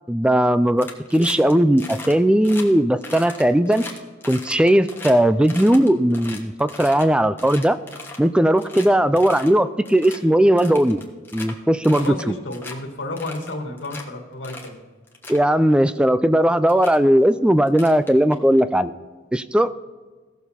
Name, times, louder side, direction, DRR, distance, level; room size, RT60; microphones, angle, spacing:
voice 1, 0.1-3.8 4.3-7.8 8.2-11.0 11.3-12.1 15.3-18.9 19.3-19.7, right 1 dB, 5° right, 13 dB, 0.4 m, -18 dB
sound 1, 0.8-1.5 1.8-2.1 2.4-2.6 3.0-5.1 5.4-7.0 7.4-8.3 8.6-8.9 9.2-9.5 9.8-10.2 10.6-11.5 11.8-12.2 12.5-12.8 13.2-14.0 14.4-14.7 15.1-15.4 16.3-16.4 16.7-17.0 17.7-18.6, left 2 dB, 10° left, 1.3 m, -37 dB
voice 2, 11.9-14.8, left 2 dB, 80° left, 1 dB, 1.8 m, -31 dB
16.5 x 6.9 x 4.2 m, 1.4 s
head